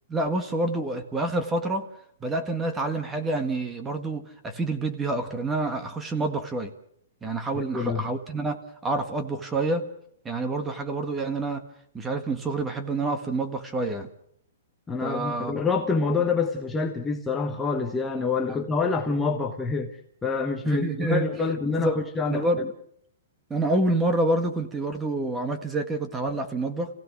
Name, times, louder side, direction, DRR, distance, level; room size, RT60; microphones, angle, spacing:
voice 1, 0.1-1.9 2.2-6.7 7.2-9.8 10.2-11.6 11.9-14.1 15.0-15.6 18.5-18.6 20.6-21.3 21.7-22.0 22.2-22.7 23.5-26.9, right 2 dB, 10° right, 1.7 m, -27 dB
voice 2, 7.6-8.0 14.9-19.9 20.2-22.5, left 4 dB, 10° left, 1.2 m, -26 dB
28.5 x 16.5 x 6.3 m
hypercardioid pair, 160°, 0 cm